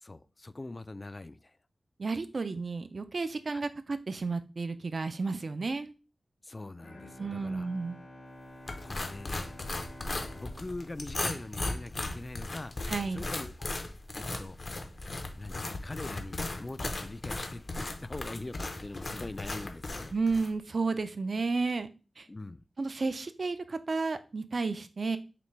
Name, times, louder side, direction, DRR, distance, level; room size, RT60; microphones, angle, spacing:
voice 1, 0.0-1.6 3.5-3.6 6.4-7.7 8.8-9.6 10.3-12.7 13.1-13.7 14.1-14.6 15.4-20.1 22.3-22.6, left 2 dB, 35° left, 0.3 m, -42 dB
voice 2, 2.0-5.9 7.2-8.0 12.9-13.2 20.1-21.9 22.2-22.3 22.8-25.2, right 4 dB, 60° right, 0.4 m, -32 dB
Bowed string instrument, 6.8-12.4, left 1 dB, 85° left, 2.1 m, -50 dB
sound 1, 8.7-20.5, left 2 dB, 55° left, 0.7 m, -37 dB
5.9 x 2.2 x 3.2 m
cardioid pair, 55°, 0 cm